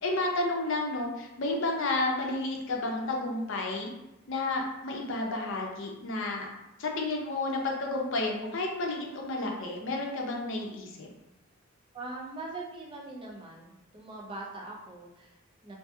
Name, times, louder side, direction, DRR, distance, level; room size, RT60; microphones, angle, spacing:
voice 1, 0.0-3.9 4.3-6.5 6.8-11.1, left 2 dB, 60° left, 0 dB, 0.5 m, -31 dB
voice 2, 11.9-15.8, right 2 dB, 25° right, -2 dB, 0.5 m, -42 dB
2.6 x 2.6 x 2.3 m, 0.95 s
head